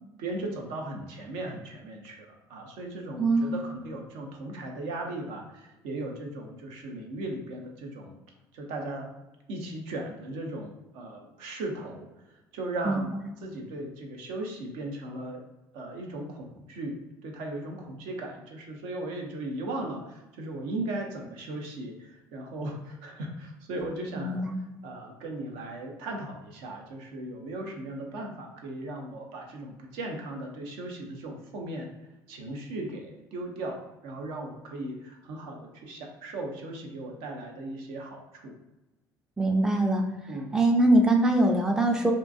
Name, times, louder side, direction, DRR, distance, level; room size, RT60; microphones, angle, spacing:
voice 1, 0.2-8.2 8.5-9.1 9.5-13.1 13.4-15.4 15.7-16.9 17.2-24.5 24.8-31.9 32.3-38.5 40.3-40.6, right 2 dB, 60° right, 1 dB, 0.5 m, -37 dB
voice 2, 3.2-3.6 12.9-13.1 24.2-24.6 39.4-40.0 40.5-42.1, right 1 dB, 5° right, 2 dB, 0.4 m, -22 dB
2.5 x 2.2 x 2.5 m, 1.0 s
figure-of-eight pair, 55°, 10 cm